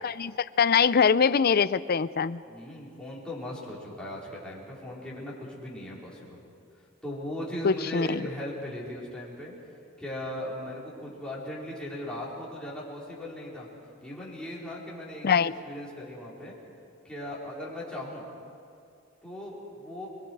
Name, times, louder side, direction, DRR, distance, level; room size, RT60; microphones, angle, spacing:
voice 1, 0.0-2.4 7.6-8.3 15.2-15.5, left 6 dB, 50° left, 15 dB, 0.5 m, -23 dB
voice 2, 2.4-6.4 7.0-9.5 10.0-13.7 14.0-16.6 17.0-18.2 19.2-20.1, left 1 dB, 5° left, -6 dB, 4.8 m, -38 dB
30.0 x 22.0 x 4.8 m, 2.4 s
head